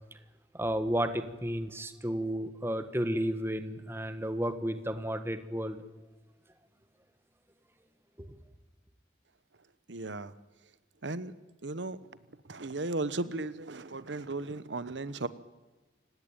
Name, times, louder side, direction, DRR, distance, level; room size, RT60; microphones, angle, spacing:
voice 1, 0.5-5.8 8.2-8.4, equal, 15° right, 9 dB, 1.5 m, -32 dB
voice 2, 9.9-10.3 11.0-11.3 11.6-12.0 12.5-15.3, right 2 dB, 85° right, 15 dB, 1.1 m, -35 dB
29.5 x 17.5 x 9.0 m, 1.2 s
head